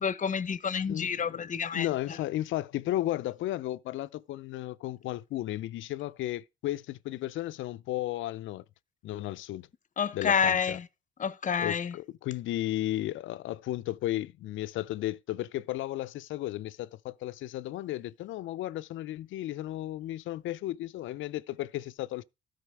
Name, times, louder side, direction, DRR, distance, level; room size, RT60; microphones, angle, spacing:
voice 1, 0.0-1.9 10.0-10.8 11.2-11.9, left 6 dB, 40° left, 0.7 m, -28 dB
voice 2, 0.8-8.6 9.0-9.7 10.1-10.8 11.6-22.2, left 14 dB, 80° left, 0.5 m, -34 dB
13.0 x 4.8 x 4.8 m
cardioid pair, 90°, 20 cm